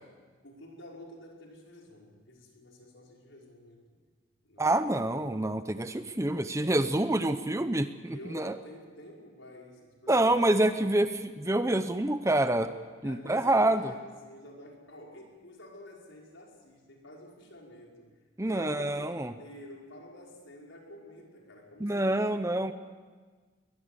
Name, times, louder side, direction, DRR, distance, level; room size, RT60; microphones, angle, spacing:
voice 1, 0.4-4.0 4.4-4.9 8.1-11.1 13.0-22.3, left 1 dB, 70° left, -1 dB, 5.6 m, -49 dB
voice 2, 4.6-8.5 10.1-12.7 13.0-13.8 18.4-19.3 21.8-22.7, right 1 dB, 15° right, 10 dB, 0.7 m, -27 dB
22.0 x 21.0 x 8.3 m, 1.5 s
head